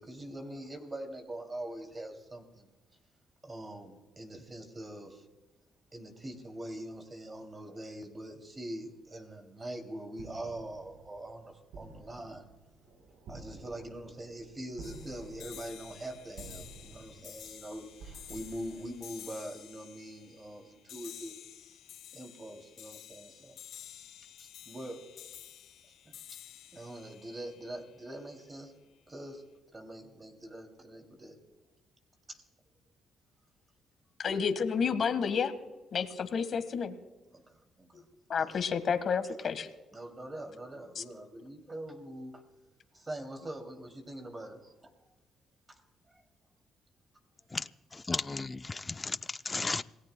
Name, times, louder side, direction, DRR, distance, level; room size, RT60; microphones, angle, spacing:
voice 1, 0.0-2.7 3.4-5.3 5.9-12.5 13.3-21.3 22.1-23.6 24.4-25.0 26.1-26.2 26.7-28.7 29.1-29.4 29.7-31.4 32.3-32.4 36.0-36.1 37.3-38.1 38.3-38.6 39.9-42.4 42.9-44.9 45.7-45.8 46.1-46.2, right 1 dB, 25° right, 2.7 m, -43 dB
sound 1, 10.1-19.6, right 3 dB, 80° right, 3.6 m, -52 dB
sound 2, 14.8-28.3, left 10 dB, 85° left, 2.3 m, -51 dB
voice 2, 34.2-35.5 35.9-36.9 38.3-39.7 41.0-41.1, left 6 dB, 55° left, 1.4 m, -30 dB
voice 3, 47.5-49.8, left 3 dB, 25° left, 0.5 m, -35 dB
27.0 x 18.0 x 2.2 m
cardioid pair, 90°, 0 cm